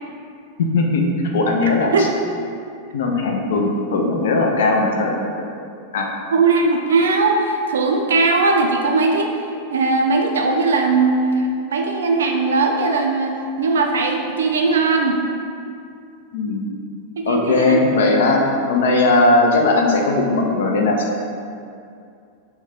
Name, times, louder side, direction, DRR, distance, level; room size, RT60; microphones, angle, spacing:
voice 1, 0.6-1.1 1.3-2.1 2.9-5.5 5.9-6.1 16.3-16.7 17.3-18.4 18.7-21.0, left 3 dB, 60° left, 1 dB, 0.4 m, -18 dB
voice 2, 1.8-2.1 6.3-9.3 9.7-15.2 17.2-17.8, right 3 dB, 65° right, 2 dB, 0.3 m, -19 dB
3.5 x 2.2 x 3.1 m, 2.4 s
figure-of-eight pair, 90°, 0 cm